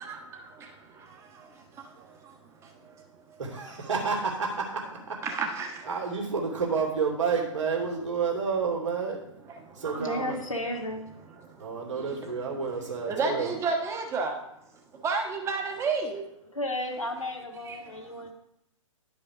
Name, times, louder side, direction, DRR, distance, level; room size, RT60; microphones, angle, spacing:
voice 1, 3.4-5.2 5.9-9.2 9.7-10.4 11.6-13.6, right 5 dB, 65° right, -1 dB, 2.7 m, -30 dB
voice 2, 5.2-5.7 9.8-10.0 13.1-14.3 15.0-16.2, right 4 dB, 15° right, 3 dB, 1.3 m, -29 dB
voice 3, 10.0-11.1 16.5-18.3, left 1 dB, 80° left, 1 dB, 1.7 m, -33 dB
10.5 x 5.4 x 4.8 m, 0.81 s
figure-of-eight pair, 115°, 17 cm